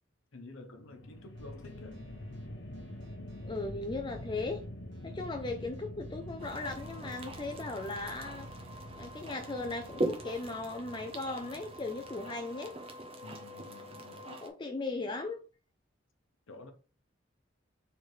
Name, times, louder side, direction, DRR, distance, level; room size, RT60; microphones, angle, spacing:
voice 1, 0.3-2.1 13.2-14.3 16.5-16.7, left 2 dB, 85° left, 0.9 m, -50 dB
sound 1, 0.7-13.0, left 1 dB, 60° left, 0.8 m, -46 dB
sound 2, 1.4-10.1, right 1 dB, 65° right, 1.2 m, -57 dB
voice 2, 3.4-4.6 5.0-8.5 9.0-12.7 14.3-15.4, left 3 dB, 25° left, 0.4 m, -37 dB
sound 3, 6.4-14.5, right 1 dB, 30° right, 0.7 m, -41 dB
4.6 x 3.4 x 3.2 m
head